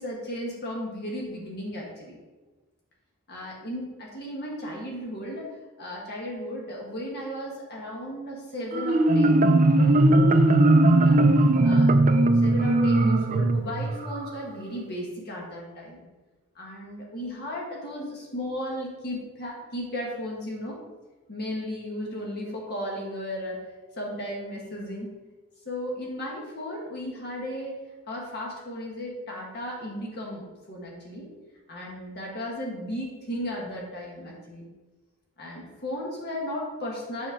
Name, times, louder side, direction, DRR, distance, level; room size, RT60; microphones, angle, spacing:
voice 1, 0.0-2.2 3.3-5.5 5.8-11.2 11.6-11.9 12.4-16.0 16.5-20.8 21.3-23.6 24.0-25.1 25.6-27.8 28.1-31.3 31.7-34.7 35.4-37.3, equal, 45° left, -2 dB, 1.4 m, -35 dB
Marimba xylophone, 8.7-14.3, right 2 dB, 35° right, 0.5 m, -19 dB
7.5 x 4.3 x 5.9 m, 1.2 s
head